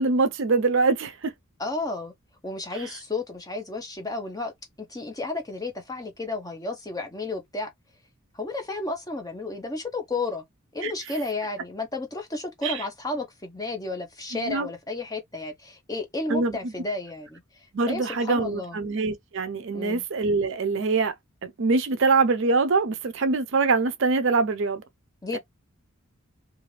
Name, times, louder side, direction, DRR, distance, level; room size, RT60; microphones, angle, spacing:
voice 1, 0.0-1.3 10.8-10.9 12.6-12.8 14.3-14.7 16.3-16.6 17.7-21.1 21.4-24.8 25.3-25.4, right 4 dB, 55° right, 0.5 m, -24 dB
voice 2, 1.6-2.1 2.4-4.5 4.8-7.7 8.3-10.4 10.7-18.8 19.7-20.0 25.2-25.4, left 2 dB, 15° left, 0.7 m, -32 dB
2.5 x 2.4 x 3.2 m
head